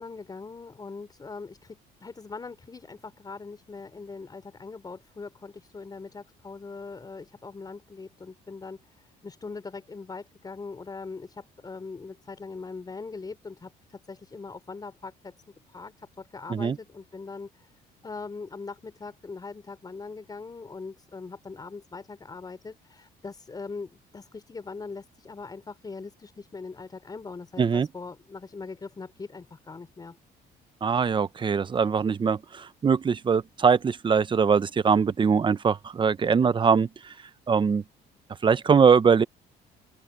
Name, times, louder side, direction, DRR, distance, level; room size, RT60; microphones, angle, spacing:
voice 1, 0.0-15.3 15.7-17.7 18.0-30.2, left 4 dB, 25° left, 4.1 m, -41 dB
voice 2, 30.8-36.9 37.5-37.8 38.4-39.2, right 6 dB, 30° right, 0.8 m, -22 dB
open air
cardioid pair, 110°, 17 cm